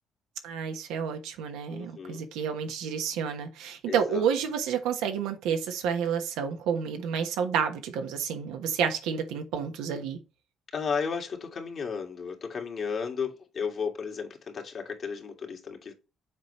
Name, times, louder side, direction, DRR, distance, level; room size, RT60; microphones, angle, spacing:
voice 1, 0.4-10.2, right 7 dB, 85° right, 1.2 m, -30 dB
voice 2, 1.7-2.3 3.9-4.3 10.7-15.9, left 6 dB, 55° left, 2.0 m, -34 dB
7.4 x 4.2 x 3.1 m
supercardioid pair, 65°, 0 cm